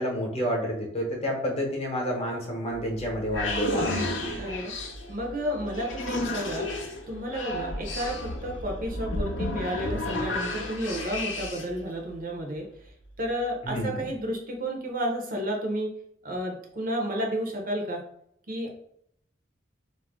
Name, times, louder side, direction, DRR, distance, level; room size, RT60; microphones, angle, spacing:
voice 1, 0.0-4.1 13.6-14.0, equal, 35° left, -1 dB, 0.8 m, -29 dB
sound 1, 2.7-11.8, left 2 dB, 85° left, 0.6 m, -32 dB
voice 2, 4.4-4.7 5.1-6.7 7.1-12.7 13.2-15.9 16.2-18.0 18.5-18.7, equal, 50° right, 1 dB, 0.6 m, -31 dB
2.4 x 2.1 x 3.4 m, 0.70 s
head